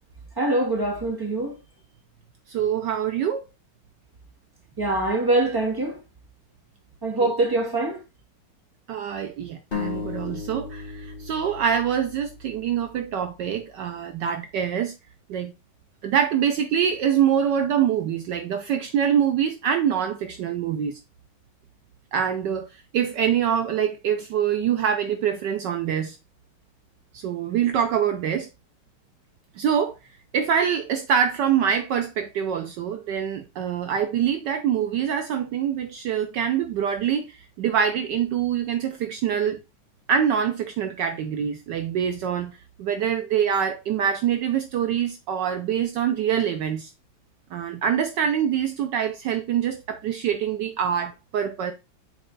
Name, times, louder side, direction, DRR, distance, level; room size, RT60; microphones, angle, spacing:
voice 1, 0.4-1.5 4.8-6.0 7.0-8.0, right 2 dB, 10° right, 1.6 m, -23 dB
voice 2, 2.5-3.4 7.2-7.3 8.9-14.9 15.3-15.5 16.0-21.0 22.1-22.7 22.9-26.2 27.1-28.5 29.6-29.9 30.3-39.6 40.1-42.5 42.8-46.9 47.5-51.7, right 8 dB, 70° right, 1.2 m, -25 dB
sound 1, 9.7-13.3, left 5 dB, 35° left, 1.0 m, -35 dB
6.8 x 4.1 x 3.9 m
omnidirectional pair, 2.2 m